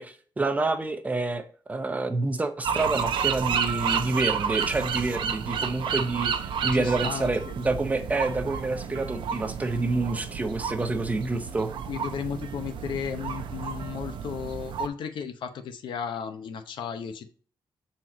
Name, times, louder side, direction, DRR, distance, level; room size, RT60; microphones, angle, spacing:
voice 1, 0.0-11.7, right 3 dB, 20° right, 8 dB, 0.6 m, -28 dB
sound 1, 2.6-14.9, right 7 dB, 90° right, 0.7 m, -31 dB
voice 2, 6.7-7.5 11.9-17.3, left 7 dB, 80° left, 9 dB, 0.8 m, -34 dB
6.2 x 4.3 x 4.0 m, 0.42 s
wide cardioid pair, 160°, 8 cm